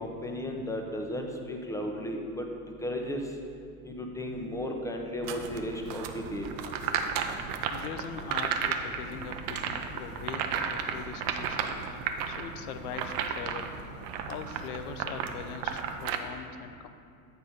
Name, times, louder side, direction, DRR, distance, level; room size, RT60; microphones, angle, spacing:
voice 1, 0.0-3.2 3.8-6.5, left 1 dB, 5° left, 2 dB, 0.7 m, -35 dB
sound 1, 4.0-16.3, left 4 dB, 40° left, 0.8 m, -52 dB
sound 2, 5.2-16.2, right 7 dB, 50° right, 0.7 m, -34 dB
voice 2, 7.7-11.8 12.3-13.7 14.2-16.9, left 7 dB, 75° left, 9 dB, 0.7 m, -41 dB
8.1 x 4.4 x 5.0 m, 2.5 s
hypercardioid pair, 100°, 44 cm